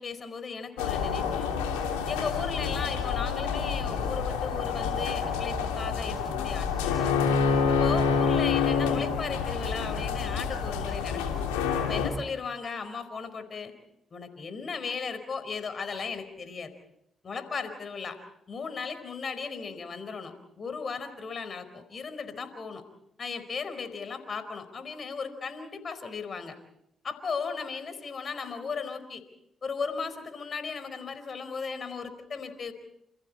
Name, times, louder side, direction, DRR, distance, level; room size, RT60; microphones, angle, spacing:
voice 1, 0.0-1.6 2.1-7.2 7.8-11.2 11.9-13.7 14.1-16.7 17.2-18.2 18.5-22.8 23.2-26.5 27.0-29.2 29.6-32.7, left 5 dB, 50° left, 10 dB, 4.7 m, -36 dB
sound 1, 0.8-12.1, left 6 dB, 90° left, 3.1 m, -28 dB
29.0 x 28.5 x 4.3 m, 0.80 s
hypercardioid pair, 40°, 0 cm